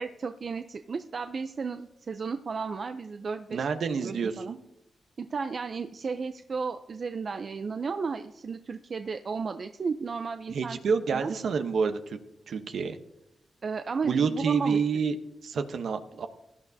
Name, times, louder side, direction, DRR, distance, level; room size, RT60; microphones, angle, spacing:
voice 1, 0.0-3.7 4.0-4.5 5.2-10.8 11.1-11.3 13.6-14.8, right 5 dB, 60° right, 8 dB, 0.5 m, -34 dB
voice 2, 3.5-4.6 10.5-12.2 12.5-13.0 14.0-15.2 15.4-16.3, right 5 dB, 80° right, 8 dB, 0.9 m, -28 dB
17.0 x 11.0 x 2.7 m, 0.85 s
supercardioid pair, 45°, 0 cm